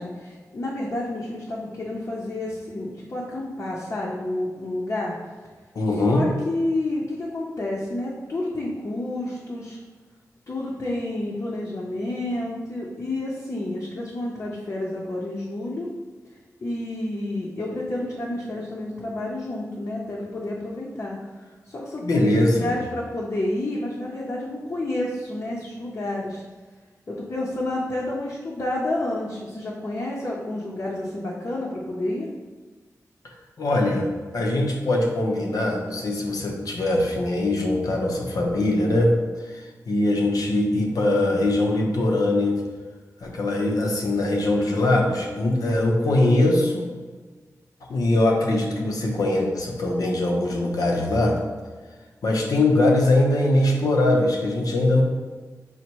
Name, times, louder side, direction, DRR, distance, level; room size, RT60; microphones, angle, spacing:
voice 1, 0.0-5.1 6.1-9.8 10.5-15.9 16.6-21.2 21.6-22.3 22.6-26.4 27.1-32.3, left 1 dB, 55° left, -5 dB, 0.7 m, -30 dB
voice 2, 5.7-6.3 22.0-22.7 33.6-42.6 43.2-46.9 47.9-51.4 52.2-55.0, left 1 dB, 90° left, 0 dB, 0.7 m, -22 dB
4.1 x 2.1 x 4.5 m, 1.4 s
wide cardioid pair, 75°, 6 cm